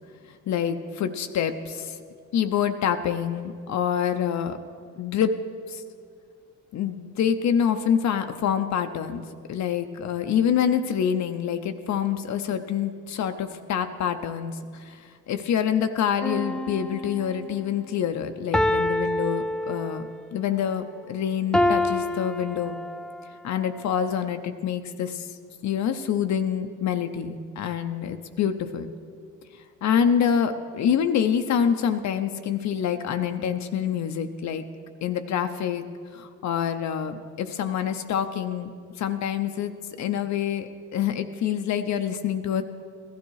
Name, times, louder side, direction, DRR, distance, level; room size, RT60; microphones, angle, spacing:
voice 1, 0.5-2.0 2.3-4.6 5.0-5.3 5.7-5.8 6.7-22.8 23.4-28.9 29.5-34.6 35.0-35.8 36.1-38.7 39.0-39.7 40.0-42.6, left 8 dB, 65° left, 7 dB, 0.7 m, -26 dB
sound 1, 16.2-17.5 18.5-20.2 21.5-23.3 23.9-24.0, left 1 dB, 5° left, 0.3 m, -26 dB
15.5 x 12.5 x 4.7 m, 2.2 s
cardioid pair, 90°, 30 cm